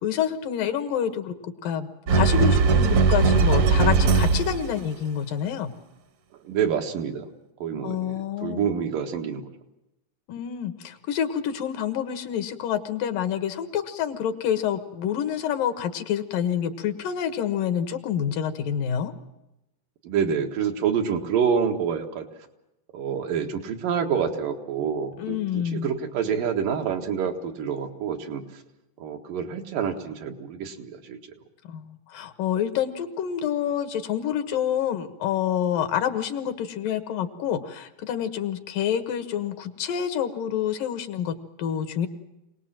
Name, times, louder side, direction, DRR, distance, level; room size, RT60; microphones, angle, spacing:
voice 1, 0.0-5.7 7.8-8.6 10.3-19.1 25.2-25.9 31.7-42.1, left 9 dB, 85° left, 9 dB, 3.1 m, -27 dB
sound 1, 2.1-4.8, right 4 dB, 60° right, 1.5 m, -19 dB
voice 2, 6.4-7.3 7.6-9.5 20.0-22.3 22.9-28.6 29.0-31.2, right 7 dB, 90° right, 3 dB, 3.4 m, -27 dB
25.0 x 19.0 x 7.6 m, 0.91 s
omnidirectional pair, 3.8 m